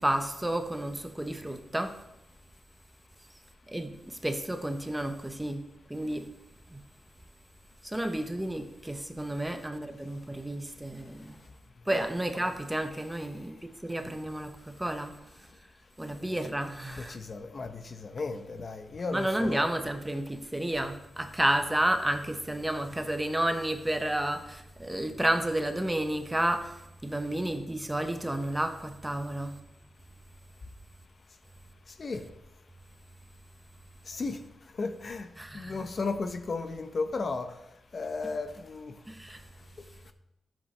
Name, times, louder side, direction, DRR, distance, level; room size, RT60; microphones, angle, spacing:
voice 1, 0.0-2.0 3.7-6.3 6.7-6.8 7.8-11.4 11.9-15.2 16.0-17.2 19.1-29.6 35.4-35.8 39.1-39.4, right 1 dB, 10° right, 0.8 m, -31 dB
voice 2, 17.0-19.7 32.0-32.2 34.1-34.4 34.8-35.3 35.5-37.6 37.9-38.9, left 3 dB, 45° left, 0.7 m, -34 dB
12.5 x 7.3 x 3.3 m
cardioid pair, 100°, 0 cm